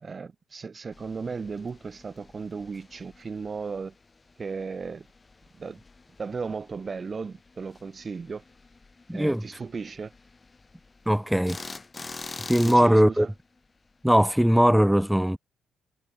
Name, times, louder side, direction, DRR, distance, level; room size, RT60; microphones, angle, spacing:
voice 1, 0.0-3.9 4.4-5.0 5.6-5.8 6.2-8.4 9.1-10.1 12.6-13.3, right 5 dB, 35° right, 0.7 m, -35 dB
sound 1, 0.9-14.3, left 3 dB, 25° left, 3.2 m, -47 dB
voice 2, 9.1-9.5 11.1-11.6 12.5-13.3 14.0-15.4, equal, 5° right, 0.5 m, -20 dB
cardioid pair, 90°, 0 cm